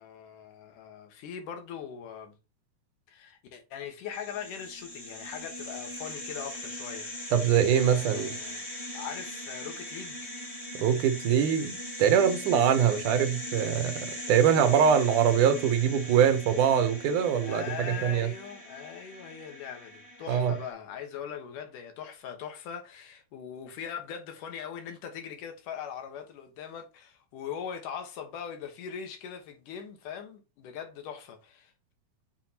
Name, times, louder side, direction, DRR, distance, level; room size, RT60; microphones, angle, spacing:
voice 1, 0.0-2.3 3.1-7.1 7.7-8.7 8.9-10.3 17.4-31.7, left 8 dB, 85° left, 2.9 m, -41 dB
sound 1, 4.1-20.7, left 1 dB, 20° left, 2.6 m, -40 dB
voice 2, 7.3-8.3 10.8-18.3 20.3-20.5, right 8 dB, 80° right, 2.4 m, -23 dB
7.6 x 5.0 x 2.9 m
omnidirectional pair, 3.6 m